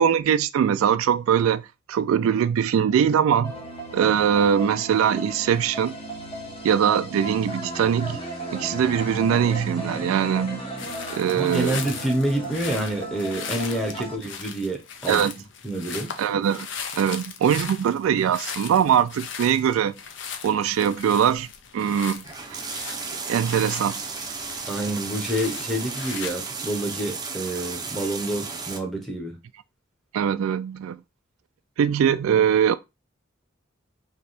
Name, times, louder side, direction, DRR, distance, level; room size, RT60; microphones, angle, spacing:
voice 1, 0.0-3.5 3.9-6.0 6.6-8.2 8.5-10.7 11.1-11.8 15.1-15.3 16.2-16.7 16.9-19.9 20.4-21.5 21.7-22.2 22.5-22.6 23.3-24.0 30.1-31.0 31.8-32.7, right 8 dB, 85° right, 0.3 m, -22 dB
sound 1, 3.4-14.2, right 1 dB, 25° left, 0.9 m, -35 dB
sound 2, 10.8-26.3, left 7 dB, 60° left, 0.6 m, -38 dB
voice 2, 11.3-15.3 15.6-16.1 24.7-29.4, right 1 dB, ahead, 0.9 m, -28 dB
sound 3, 22.2-28.8, right 4 dB, 20° right, 0.5 m, -34 dB
3.3 x 2.8 x 4.2 m
head